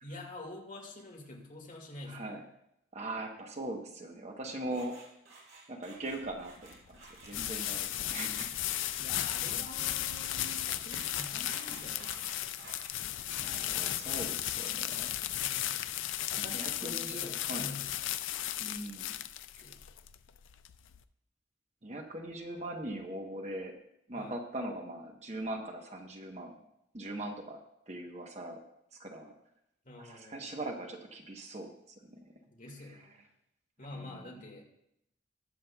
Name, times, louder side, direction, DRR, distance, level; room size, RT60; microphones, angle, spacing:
voice 1, 0.0-2.4 9.0-12.6 15.4-15.9 16.3-17.9 19.6-19.8 24.1-24.3 29.8-30.4 32.5-33.2 33.8-34.7, left 1 dB, 40° left, 1 dB, 2.0 m, -47 dB
voice 2, 2.0-2.4 2.9-5.0 5.7-6.5 6.9-7.0 7.2-8.6 13.2-15.2 16.4-17.8 18.6-19.2 21.8-23.8 24.1-26.5 26.9-27.6 27.9-28.6 28.9-29.3 30.0-31.7 32.1-32.2 32.9-33.0 34.0-34.2, right 1 dB, 35° right, 3 dB, 1.0 m, -40 dB
sound 1, 4.7-12.9, right 3 dB, 85° right, 4.0 m, -52 dB
sound 2, 6.1-21.0, left 13 dB, 75° left, 0.4 m, -35 dB
21.0 x 7.4 x 2.3 m, 0.80 s
head